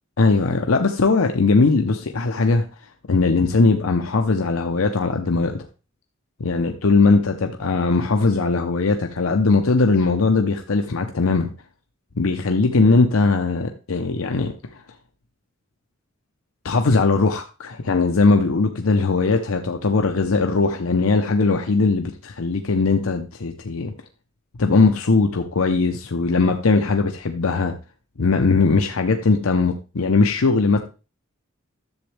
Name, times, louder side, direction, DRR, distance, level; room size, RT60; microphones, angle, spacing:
voice 1, 0.2-2.6 3.1-5.6 6.4-11.5 12.2-14.5 16.6-23.9 24.6-27.7 28.2-30.8, left 3 dB, 90° left, 0.8 m, -19 dB
11.0 x 7.2 x 3.3 m
head